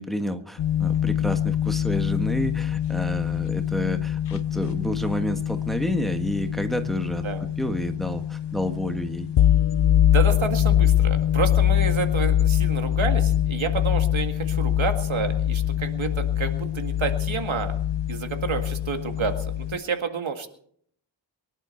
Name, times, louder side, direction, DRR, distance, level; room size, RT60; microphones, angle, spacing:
voice 1, 0.0-7.2 7.6-9.3, equal, ahead, 6 dB, 1.5 m, -29 dB
sound 1, 0.6-19.8, left 11 dB, 65° left, 0.6 m, -24 dB
voice 2, 10.1-17.7 18.1-20.5, right 5 dB, 85° right, 6 dB, 2.0 m, -29 dB
23.5 x 11.5 x 4.5 m, 0.64 s
wide cardioid pair, 120°, 47 cm